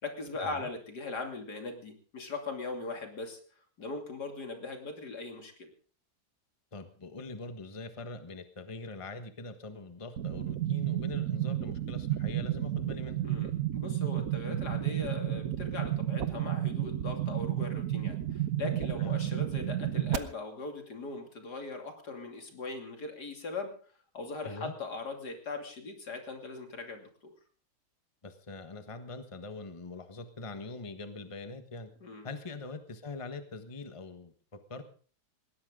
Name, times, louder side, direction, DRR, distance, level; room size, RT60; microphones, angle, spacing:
voice 1, 0.0-3.4 3.8-5.7 13.2-23.7 24.1-27.3 32.0-32.3, left 3 dB, 75° left, 4 dB, 3.3 m, -40 dB
voice 2, 6.7-13.2 19.0-19.2 24.4-24.7 28.2-31.9 32.2-34.8, left 3 dB, 20° left, 8 dB, 1.4 m, -43 dB
sound 1, 10.2-20.2, right 12 dB, 60° right, 1.4 m, -32 dB
20.5 x 16.5 x 3.8 m, 0.41 s
omnidirectional pair, 1.8 m